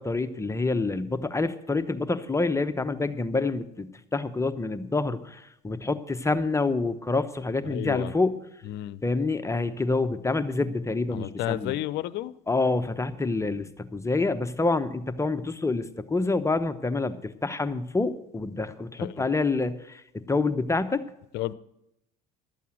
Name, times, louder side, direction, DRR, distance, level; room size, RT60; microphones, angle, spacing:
voice 1, 0.0-8.3 9.0-11.8 12.5-21.0, left 3 dB, 15° left, 0.9 m, -27 dB
voice 2, 7.6-8.1 8.6-9.0 11.1-12.3 19.0-19.1 21.3-21.5, left 15 dB, 60° left, 0.7 m, -31 dB
12.5 x 8.4 x 7.7 m
hypercardioid pair, 75°, 20 cm